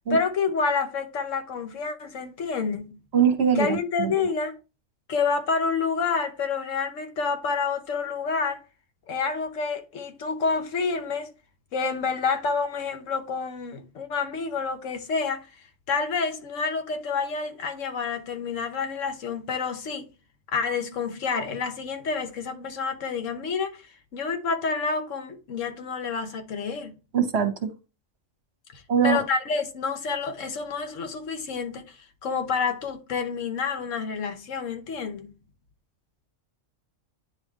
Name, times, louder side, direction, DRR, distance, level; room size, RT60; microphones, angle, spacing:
voice 1, 0.1-2.9 3.6-4.6 5.1-8.6 9.1-11.3 11.7-15.5 15.9-20.1 20.5-27.0 28.7-35.4, left 5 dB, 75° left, 1.2 m, -28 dB
voice 2, 3.1-4.1 27.1-27.7 28.9-29.2, right 7 dB, 60° right, 1.2 m, -22 dB
9.4 x 3.5 x 3.2 m
omnidirectional pair, 1.3 m